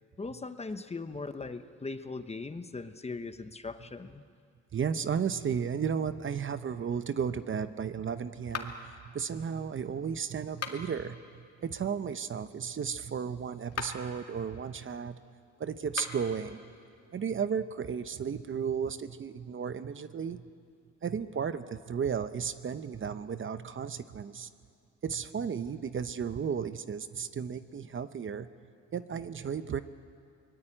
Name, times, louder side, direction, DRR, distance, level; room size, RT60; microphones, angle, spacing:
voice 1, 0.2-4.2, left 3 dB, 20° left, 10 dB, 1.0 m, -39 dB
voice 2, 4.7-15.2 15.6-16.6 17.1-20.5 21.0-24.5 25.0-28.5 28.9-29.8, right 7 dB, 40° right, 12 dB, 0.9 m, -34 dB
sound 1, 8.5-9.0 10.5-11.1 13.6-14.1 15.8-16.3, left 6 dB, 55° left, 2.3 m, -39 dB
24.5 x 20.0 x 9.0 m, 2.3 s
cardioid pair, 90°, 30 cm